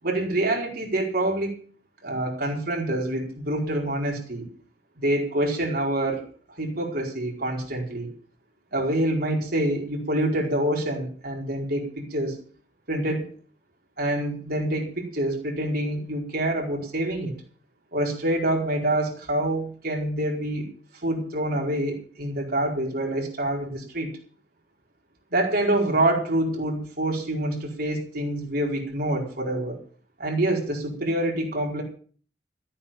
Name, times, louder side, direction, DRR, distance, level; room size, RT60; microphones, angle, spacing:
voice 1, 0.0-1.6 2.0-4.4 5.0-6.2 6.6-8.1 8.7-12.4 12.9-13.3 14.0-17.4 17.9-20.7 21.0-24.2 25.3-29.8 30.2-31.8, right 1 dB, 55° right, 0 dB, 4.7 m, -26 dB
14.5 x 8.8 x 7.2 m, 0.43 s
head